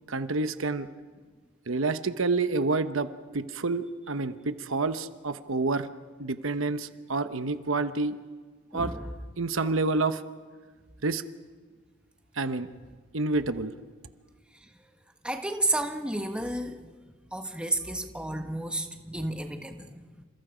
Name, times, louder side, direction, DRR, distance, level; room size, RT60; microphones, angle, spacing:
voice 1, 0.1-0.9 1.7-5.9 6.2-8.2 8.7-8.9 9.4-10.2 11.0-11.2 12.4-12.7 13.1-13.7, right 3 dB, 70° right, 10 dB, 1.0 m, -28 dB
voice 2, 8.7-9.1 15.2-16.9 17.3-20.2, right 1 dB, 5° right, 5 dB, 1.4 m, -31 dB
29.0 x 27.5 x 5.1 m, 1.5 s
head